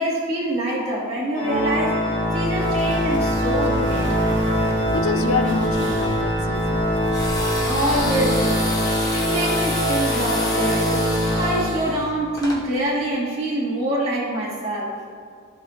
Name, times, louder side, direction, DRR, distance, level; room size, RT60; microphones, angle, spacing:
voice 1, 0.0-2.0 2.3-4.1 7.6-8.7 9.1-11.0 11.3-14.9, right 1 dB, 30° right, -7 dB, 1.9 m, -25 dB
Organ, 1.3-12.2, equal, 35° left, 1.5 m, -23 dB
sound 1, 2.6-8.2, right 1 dB, 60° right, 0.9 m, -34 dB
voice 2, 4.7-6.9, left 4 dB, 85° left, 8 dB, 0.5 m, -27 dB
sound 2, 7.1-12.6, left 2 dB, 20° left, 1.2 m, -30 dB
15.5 x 5.7 x 2.5 m, 2.2 s
head